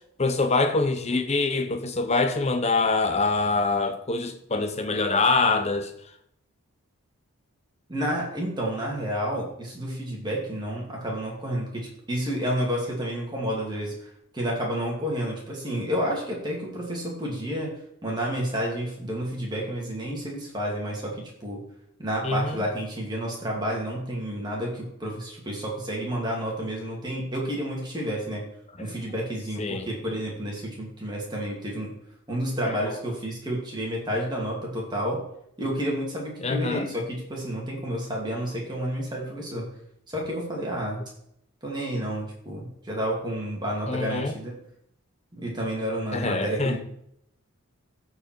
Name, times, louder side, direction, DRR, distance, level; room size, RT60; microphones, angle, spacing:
voice 1, 0.2-5.9 22.2-22.6 28.8-28.9 29.6-29.9 32.7-33.0 36.4-36.9 43.9-44.4 46.1-46.8, left 3 dB, 30° left, 0.8 m, -25 dB
voice 2, 7.9-17.7 18.0-21.6 22.0-28.4 28.8-31.9 32.3-35.2 35.6-39.7 40.1-41.0 41.6-44.5 45.3-46.8, equal, 20° right, 2.6 m, -30 dB
14.5 x 4.9 x 4.5 m
head